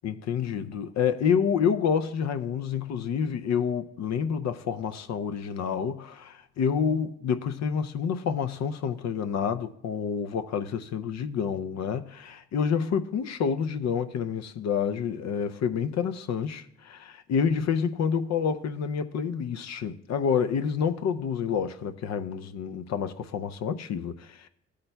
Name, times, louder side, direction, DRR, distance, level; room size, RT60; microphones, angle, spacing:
voice 1, 0.0-24.5, left 7 dB, 65° left, 0.6 m, -28 dB
15.0 x 8.5 x 2.2 m
cardioid pair, 90°, 30 cm